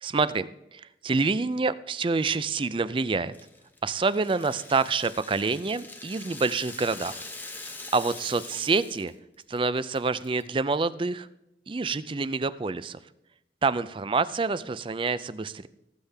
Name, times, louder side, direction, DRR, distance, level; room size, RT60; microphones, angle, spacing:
voice 1, 0.0-3.3 3.8-7.2 7.6-9.1 9.5-11.3 11.7-13.0 13.6-15.7, right 4 dB, 30° right, 16 dB, 0.4 m, -27 dB
Rattle (instrument), 3.3-9.1 9.4-9.6 9.9-10.4, left 3 dB, 10° left, 0.9 m, -43 dB
18.5 x 8.2 x 3.4 m, 0.88 s
head